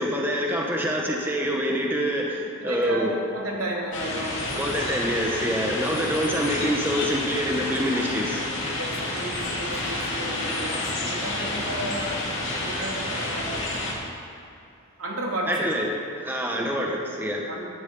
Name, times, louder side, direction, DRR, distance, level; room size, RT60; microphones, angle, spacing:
voice 1, 0.0-3.2 4.6-8.5 15.5-15.9 16.2-17.5, equal, 10° right, -1 dB, 1.0 m, -26 dB
voice 2, 2.6-4.7 8.8-12.2 12.5-13.7 15.0-15.9 16.5-16.7 17.5-17.6, right 1 dB, 80° right, -2 dB, 2.7 m, -33 dB
sound 1, 3.9-13.9, left 2 dB, 60° left, 2.8 m, -29 dB
15.5 x 11.5 x 3.9 m, 2.6 s
head